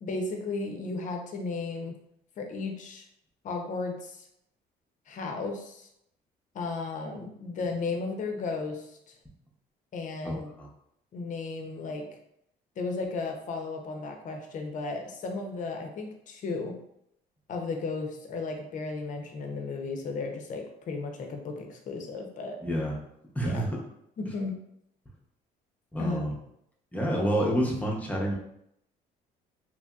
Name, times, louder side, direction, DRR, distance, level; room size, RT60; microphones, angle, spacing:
voice 1, 0.0-2.0 2.4-3.0 3.4-4.3 5.1-5.9 6.5-9.2 9.9-10.5 11.1-12.1 12.8-16.7 17.5-22.6 23.4-23.6 24.2-24.5 26.0-26.2, left 3 dB, 50° left, 3 dB, 0.6 m, -34 dB
voice 2, 10.2-10.7 22.6-22.9 23.3-23.7 25.9-26.3 26.9-28.3, equal, 10° left, -2 dB, 0.7 m, -28 dB
2.8 x 2.7 x 2.3 m, 0.76 s
cardioid pair, 110°, 17 cm